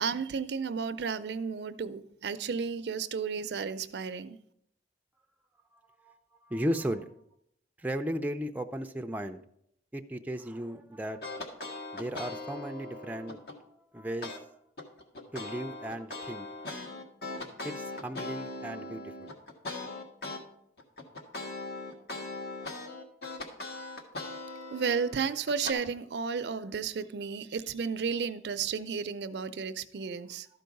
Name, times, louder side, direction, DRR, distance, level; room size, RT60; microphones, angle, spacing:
voice 1, 0.0-4.4 24.3-24.4 24.7-30.5, right 6 dB, 75° right, 0.5 m, -33 dB
voice 2, 6.5-7.1 7.8-9.4 9.9-11.2 11.9-13.5 13.9-14.4 15.3-16.5 17.6-19.3, equal, 10° right, 0.4 m, -35 dB
sound 1, 11.2-13.6 14.2-14.4 14.8-20.4 20.8-25.7, left 2 dB, 60° left, 1.4 m, -40 dB
12.5 x 4.6 x 5.2 m
head